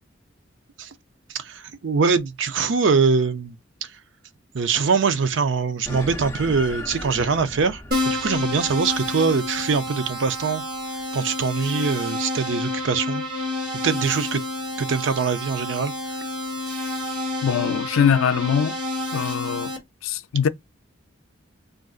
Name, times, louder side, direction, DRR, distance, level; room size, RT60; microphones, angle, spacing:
voice 1, 1.3-3.9 4.5-10.6 11.1-13.2 13.8-14.4 14.8-15.9, right 5 dB, 65° right, 0.5 m, -23 dB
sound 1, 5.9-10.6, left 1 dB, 15° left, 0.5 m, -37 dB
Keyboard (musical), 7.9-19.8, left 2 dB, 45° right, 1.2 m, -29 dB
voice 2, 17.4-18.8 19.1-19.7 20.0-20.5, left 7 dB, 90° left, 0.4 m, -22 dB
3.8 x 2.5 x 2.4 m
head